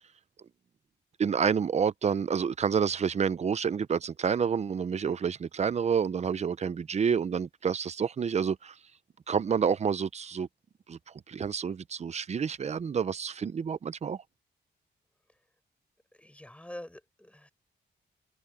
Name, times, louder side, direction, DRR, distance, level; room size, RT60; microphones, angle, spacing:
voice 1, 1.2-8.8 9.3-10.5 10.9-11.0 11.3-14.2, right 6 dB, 40° right, 0.6 m, -28 dB
voice 2, 16.1-17.5, left 1 dB, 5° left, 7.0 m, -45 dB
wide cardioid pair, 130°, 18 cm